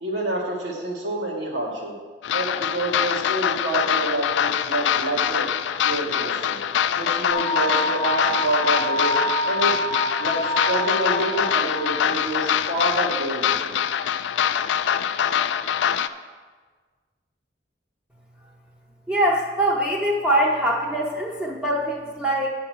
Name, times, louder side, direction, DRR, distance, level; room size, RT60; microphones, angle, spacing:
voice 1, 0.0-1.9 2.3-5.5 5.8-6.6 7.0-9.2 9.4-9.8 10.2-13.8, right 1 dB, 90° right, -2 dB, 2.0 m, -28 dB
sound 1, 2.2-16.1, left 9 dB, 85° left, 0.3 m, -24 dB
sound 2, 7.3-12.3, equal, 50° right, 1.1 m, -27 dB
voice 2, 19.1-22.5, right 1 dB, 5° right, -4 dB, 0.7 m, -23 dB
8.4 x 5.7 x 6.2 m, 1.4 s
head